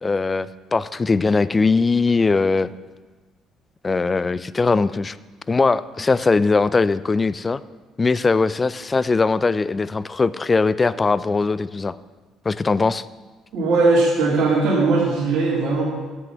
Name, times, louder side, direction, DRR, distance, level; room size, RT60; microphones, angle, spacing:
voice 1, 0.0-2.7 3.8-5.2 5.5-7.6 8.0-11.9 12.5-13.0, left 4 dB, 30° left, 17 dB, 0.4 m, -20 dB
voice 2, 13.5-15.8, right 3 dB, 65° right, -5 dB, 3.1 m, -19 dB
7.8 x 6.1 x 6.9 m, 1.3 s
hypercardioid pair, 55°, 0 cm